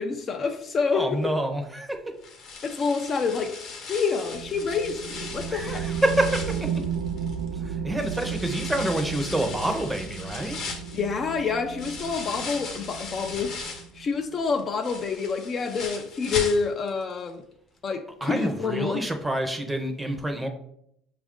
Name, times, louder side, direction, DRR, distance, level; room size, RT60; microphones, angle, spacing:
voice 1, 0.0-1.3 2.6-3.6 3.8-5.9 10.9-13.6 13.9-17.4 17.8-19.1, left 5 dB, 40° left, 0.4 m, -28 dB
voice 2, 0.9-2.0 5.5-6.5 7.6-10.6 18.2-20.5, right 1 dB, 10° right, 0.6 m, -27 dB
sound 1, 2.2-7.5 8.0-14.0 14.4-17.0 17.3-17.4 17.9-18.0, left 4 dB, 55° left, 0.9 m, -38 dB
sound 2, 4.3-14.3, right 7 dB, 85° right, 0.3 m, -34 dB
5.1 x 2.4 x 3.6 m
supercardioid pair, 105°, 0 cm